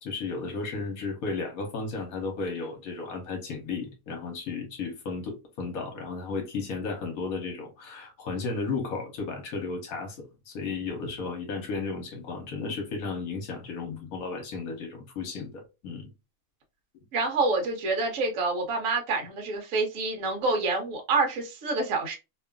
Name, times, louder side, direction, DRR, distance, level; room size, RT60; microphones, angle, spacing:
voice 1, 0.0-16.1, left 4 dB, 70° left, 1.3 m, -34 dB
voice 2, 17.1-22.1, right 3 dB, 60° right, 1.2 m, -27 dB
2.9 x 2.4 x 2.2 m
omnidirectional pair, 1.6 m